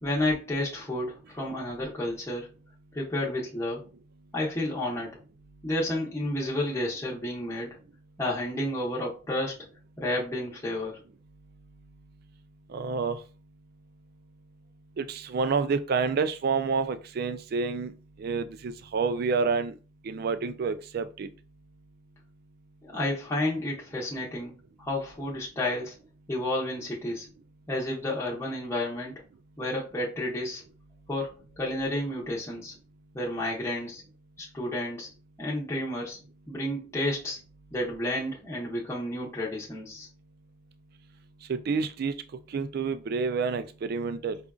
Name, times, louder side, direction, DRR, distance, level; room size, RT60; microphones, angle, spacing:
voice 1, 0.0-2.5 2.9-3.8 4.3-5.1 5.6-7.7 8.2-9.6 10.0-11.0 22.8-24.5 24.8-26.0 26.3-27.3 27.7-29.2 29.6-30.6 31.1-32.7 33.1-34.0 34.4-35.1 35.4-36.2 36.5-37.4 37.7-40.1, left 1 dB, 15° left, 0.8 m, -31 dB
voice 2, 12.7-13.2 15.0-17.9 18.2-19.7 20.0-21.3 41.5-42.1 42.5-44.4, right 5 dB, 55° right, 0.3 m, -28 dB
4.9 x 2.4 x 2.3 m
head